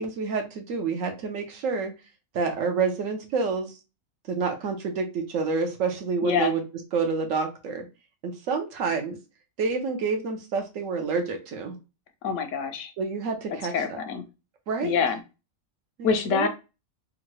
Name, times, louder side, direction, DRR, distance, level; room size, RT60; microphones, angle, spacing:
voice 1, 0.0-1.9 2.3-3.7 4.3-6.6 6.9-7.8 8.2-9.2 9.6-11.8 13.0-14.0 14.7-15.0 16.0-16.5, right 4 dB, 75° right, 4 dB, 1.1 m, -28 dB
voice 2, 6.2-6.5 12.2-12.9 13.7-14.2 14.8-15.2 16.0-16.5, left 6 dB, 70° left, 7 dB, 0.9 m, -25 dB
3.7 x 2.2 x 3.0 m, 0.29 s
omnidirectional pair, 1.4 m